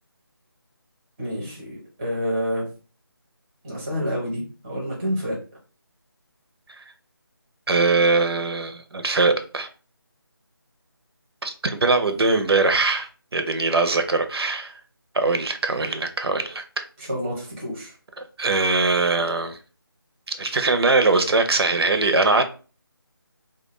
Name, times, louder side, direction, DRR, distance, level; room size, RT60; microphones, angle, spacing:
voice 1, 1.2-2.7 3.6-5.4 17.0-17.9, equal, 10° right, -5 dB, 0.5 m, -28 dB
voice 2, 7.7-9.7 11.4-14.8 15.1-16.8 18.4-19.6 20.3-22.4, right 3 dB, 85° right, 7 dB, 0.5 m, -21 dB
2.3 x 2.2 x 2.9 m, 0.36 s
figure-of-eight pair, 170°, 13 cm